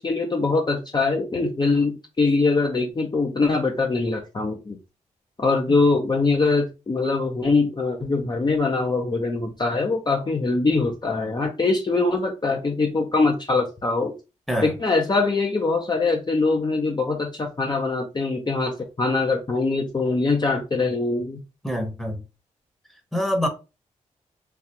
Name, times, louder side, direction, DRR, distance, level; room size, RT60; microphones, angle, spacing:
voice 1, 0.0-4.8 5.4-14.1 14.6-21.4, left 3 dB, 30° left, 0.6 m, -23 dB
voice 2, 21.6-22.2 23.1-23.5, equal, ahead, 0.9 m, -25 dB
3.3 x 2.4 x 2.9 m
cardioid pair, 55°, 14 cm